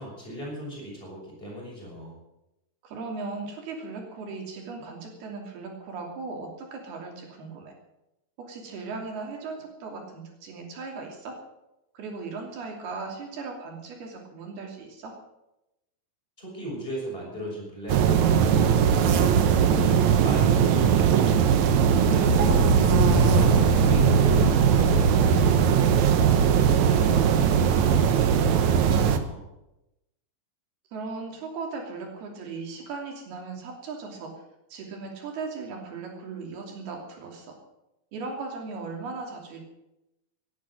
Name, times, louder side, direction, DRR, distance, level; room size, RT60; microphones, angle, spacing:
voice 1, 0.0-2.2 16.4-22.5 23.1-26.4 26.7-29.4, equal, 15° left, -3 dB, 6.7 m, -38 dB
voice 2, 2.8-7.7 8.4-11.4 11.9-15.1 22.9-23.7 30.9-34.3 34.7-37.6 38.1-39.6, right 4 dB, 90° right, 1 dB, 4.9 m, -37 dB
sound 1, 17.9-29.2, right 8 dB, 65° right, 2.0 m, -20 dB
sound 2, 22.4-28.1, right 1 dB, 45° right, 2.9 m, -27 dB
18.0 x 10.5 x 6.6 m, 0.91 s
omnidirectional pair, 4.3 m